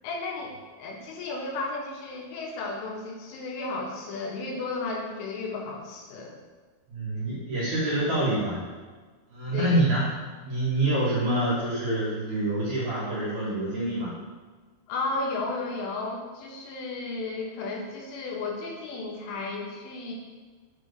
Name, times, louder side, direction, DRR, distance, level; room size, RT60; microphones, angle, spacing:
voice 1, 0.0-6.4 9.5-9.9 14.9-20.1, left 3 dB, 80° left, -1 dB, 3.7 m, -33 dB
voice 2, 6.9-8.6 9.3-10.1 10.4-14.1, right 1 dB, 50° right, -9 dB, 2.6 m, -26 dB
8.1 x 4.2 x 6.6 m, 1.4 s
omnidirectional pair, 5.6 m